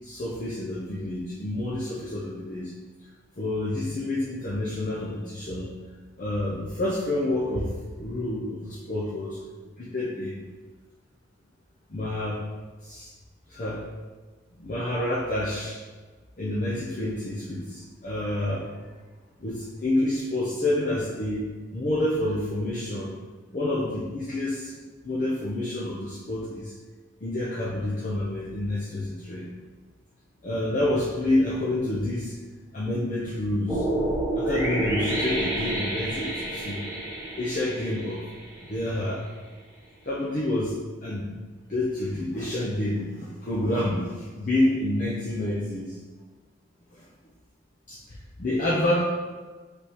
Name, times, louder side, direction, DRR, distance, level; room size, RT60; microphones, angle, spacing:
voice 1, 0.0-2.7 3.4-5.7 6.2-9.4 9.8-10.4 11.9-12.5 12.8-13.1 13.5-13.9 14.6-15.8 16.4-18.9 19.4-23.1 23.5-26.7 27.2-29.5 30.4-32.4 32.7-33.9 34.4-36.9 37.4-38.2 38.7-39.2 40.0-41.3 41.7-46.0 46.9-47.1 47.9-49.1, left 1 dB, 40° left, -6 dB, 0.6 m, -28 dB
sound 1, 33.7-38.9, right 1 dB, 15° right, 0.9 m, -29 dB
5.0 x 3.4 x 3.0 m, 1.4 s
head